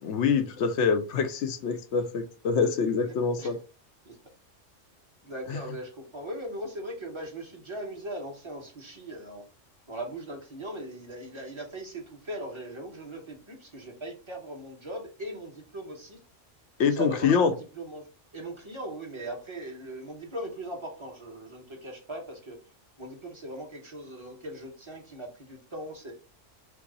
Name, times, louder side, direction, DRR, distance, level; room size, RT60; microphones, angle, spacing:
voice 1, 0.0-3.6 5.5-5.6 16.8-17.5, left 5 dB, 70° left, 0.9 m, -25 dB
voice 2, 5.2-9.4 9.9-16.2 16.9-18.1 18.3-22.6 23.0-26.1, right 1 dB, 25° right, 1.1 m, -39 dB
5.9 x 2.0 x 3.9 m
omnidirectional pair, 1.3 m